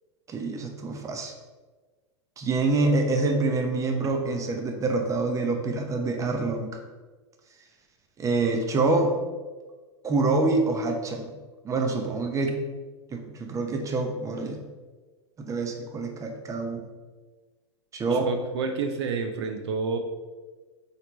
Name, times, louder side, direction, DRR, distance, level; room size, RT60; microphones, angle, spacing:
voice 1, 0.3-1.3 2.4-6.7 8.2-9.1 10.0-11.3 11.6-12.6 13.1-14.6 15.4-16.8 17.9-18.3, right 3 dB, 20° right, 3 dB, 0.7 m, -26 dB
voice 2, 18.1-20.0, right 5 dB, 65° right, 5 dB, 0.5 m, -29 dB
4.1 x 3.4 x 3.8 m, 1.3 s
figure-of-eight pair, 90°, 15 cm